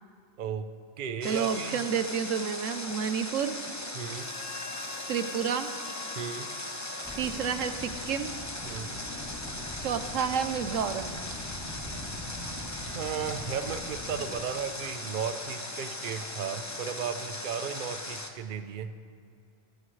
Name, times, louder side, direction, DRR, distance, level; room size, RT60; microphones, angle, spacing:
voice 1, 0.4-0.7 1.0-1.8 3.9-4.3 6.1-6.5 8.6-9.0 12.8-18.9, right 7 dB, 50° right, 10 dB, 0.7 m, -35 dB
Water, 1.2-18.3, left 1 dB, 15° left, 0.9 m, -38 dB
voice 2, 1.2-3.6 5.1-5.7 7.2-8.3 9.8-11.2, right 7 dB, 75° right, 10 dB, 1.1 m, -30 dB
Harmonica, 4.0-8.9, left 4 dB, 60° left, 1.4 m, -46 dB
sound 1, 7.0-14.3, left 1 dB, ahead, 2.9 m, -42 dB
24.5 x 13.5 x 3.2 m, 2.2 s
omnidirectional pair, 1.3 m